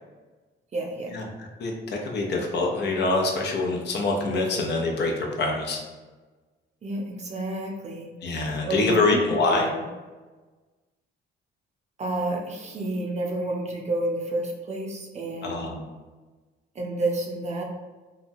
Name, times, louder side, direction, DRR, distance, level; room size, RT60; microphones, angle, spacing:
voice 1, 0.7-1.1 6.8-8.1 8.7-9.2 9.5-9.8 12.0-15.7 16.7-17.6, right 2 dB, 35° right, 0 dB, 0.5 m, -30 dB
voice 2, 1.6-5.8 8.2-9.7 15.4-15.8, left 3 dB, 60° left, 1 dB, 0.6 m, -25 dB
2.8 x 2.2 x 2.6 m, 1.3 s
cardioid pair, 90°, 20 cm